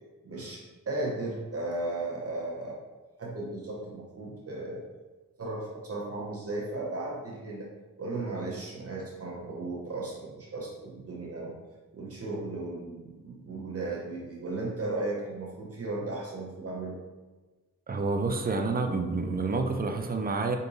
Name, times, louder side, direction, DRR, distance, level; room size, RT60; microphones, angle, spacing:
voice 1, 0.2-2.8 3.2-4.8 5.4-7.7 8.0-11.5 11.9-17.0, right 2 dB, 45° right, -3 dB, 0.9 m, -35 dB
voice 2, 17.9-20.6, right 3 dB, 30° right, 4 dB, 0.5 m, -28 dB
4.7 x 2.7 x 2.6 m, 1.2 s
cardioid pair, 65°, 33 cm